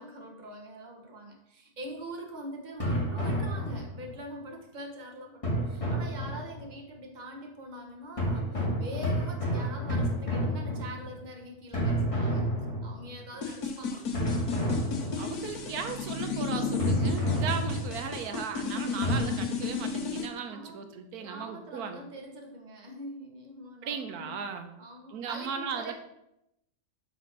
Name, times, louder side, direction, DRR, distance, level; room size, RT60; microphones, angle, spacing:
voice 1, 0.0-12.4 12.8-14.1 15.4-15.5 20.5-24.5 24.8-25.9, right 1 dB, 30° right, 2 dB, 1.2 m, -43 dB
sound 1, 2.8-4.2 5.4-6.7 8.2-11.3 11.7-13.2 14.1-15.5 16.8-18.2 19.0-19.2, equal, 20° left, 1.7 m, -30 dB
sound 2, 13.4-20.3, left 4 dB, 85° left, 1.5 m, -33 dB
voice 2, 15.2-22.0 23.8-24.7 25.1-25.9, right 6 dB, 85° right, 7 dB, 1.3 m, -37 dB
5.9 x 4.3 x 6.0 m, 0.83 s
omnidirectional pair, 1.6 m